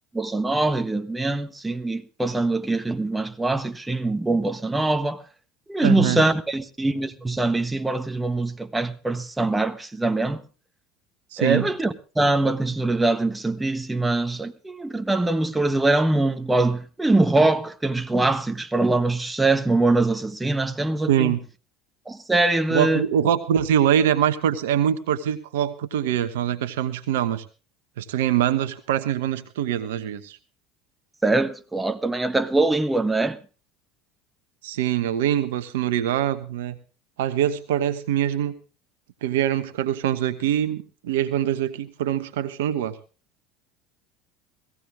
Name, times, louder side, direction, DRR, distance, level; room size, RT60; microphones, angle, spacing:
voice 1, 0.1-5.2 5.7-10.4 11.4-21.3 22.1-23.1 31.2-33.4, right 2 dB, 10° right, 1.3 m, -23 dB
voice 2, 5.8-6.2 11.3-11.7 21.1-21.4 22.7-27.4 28.0-30.4 34.6-36.8 37.2-38.5 39.2-43.0, right 10 dB, 75° right, 1.1 m, -23 dB
17.0 x 15.5 x 3.6 m
hypercardioid pair, 75°, 0 cm